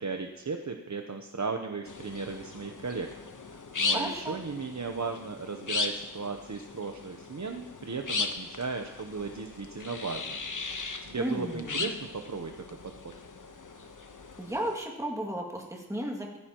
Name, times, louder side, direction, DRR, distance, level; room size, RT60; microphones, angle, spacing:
voice 1, 0.0-3.1 3.4-10.4 11.0-12.8 13.0-13.1, right 4 dB, 55° right, 5 dB, 0.9 m, -36 dB
sound 1, 1.9-14.8, left 4 dB, 60° left, 1.1 m, -37 dB
voice 2, 3.9-4.4 11.2-11.9 14.4-16.4, right 1 dB, 10° right, -1 dB, 2.2 m, -34 dB
16.5 x 14.5 x 3.0 m, 1.1 s
wide cardioid pair, 55°, 35 cm